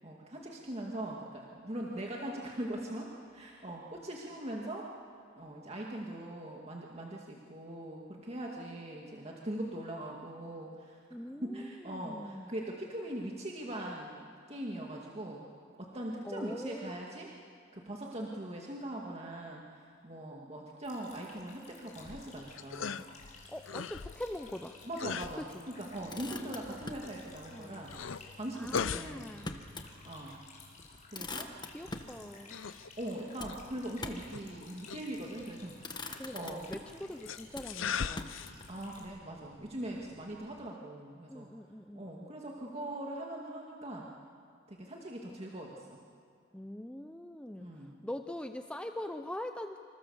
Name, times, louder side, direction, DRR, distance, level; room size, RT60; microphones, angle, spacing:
voice 1, 0.0-4.9 5.4-11.0 11.4-15.5 15.8-17.3 17.7-23.0 24.9-27.9 28.4-29.3 30.0-30.4 31.1-31.5 33.0-36.7 38.7-41.5 41.9-44.1 44.7-46.0 47.6-48.0, right 1 dB, 30° right, -2 dB, 2.2 m, -41 dB
voice 2, 11.1-12.5 16.2-16.9 23.5-24.8 25.4-25.7 26.3-26.6 27.5-27.8 28.5-29.5 31.3-32.6 36.2-38.4 41.3-42.3 46.5-49.8, left 1 dB, 5° left, 7 dB, 0.7 m, -43 dB
sound 1, 20.8-39.1, left 4 dB, 40° left, 5.5 m, -56 dB
sound 2, 22.0-40.7, left 6 dB, 75° left, 0.7 m, -43 dB
Motor vehicle (road), 26.1-27.1 28.7-29.9 30.3-30.4 30.8-32.2 33.4-34.4 35.2-35.5 35.8-37.0 37.5-38.7, left 3 dB, 20° left, 1.3 m, -44 dB
27.0 x 27.0 x 7.2 m, 2.3 s
head